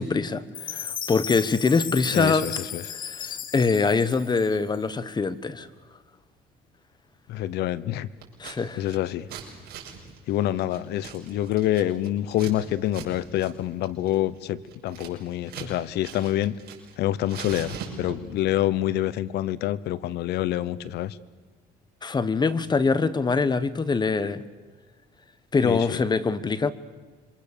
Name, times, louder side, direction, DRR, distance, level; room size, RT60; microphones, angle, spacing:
voice 1, 0.0-2.4 2.9-5.7 8.4-8.8 22.0-24.4 25.5-26.7, left 4 dB, 25° left, 15 dB, 1.3 m, -24 dB
Chime, 0.5-4.9, left 9 dB, 55° left, 1.5 m, -35 dB
voice 2, 2.1-2.8 7.3-8.1 8.8-9.3 10.3-16.6 17.0-21.2 25.6-26.0, left 13 dB, 80° left, 18 dB, 0.9 m, -27 dB
Scissors, 8.2-8.6 8.8-12.5 12.9-13.1 13.3-13.5 13.8-15.7 16.0-16.9 17.2-18.4, right 7 dB, 70° right, 5.9 m, -40 dB
27.0 x 24.5 x 6.9 m, 1.4 s
cardioid pair, 110°, 17 cm